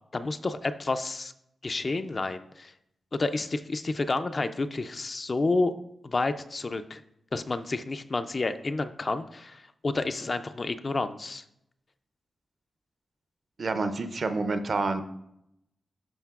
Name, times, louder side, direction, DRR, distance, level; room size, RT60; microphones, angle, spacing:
voice 1, 0.1-1.3 1.6-2.7 3.1-5.7 6.0-7.0 7.3-11.4, left 3 dB, 35° left, 10 dB, 0.3 m, -30 dB
voice 2, 13.6-15.0, right 3 dB, 50° right, 9 dB, 0.5 m, -28 dB
11.5 x 5.2 x 2.4 m, 0.79 s
wide cardioid pair, 135°, 0 cm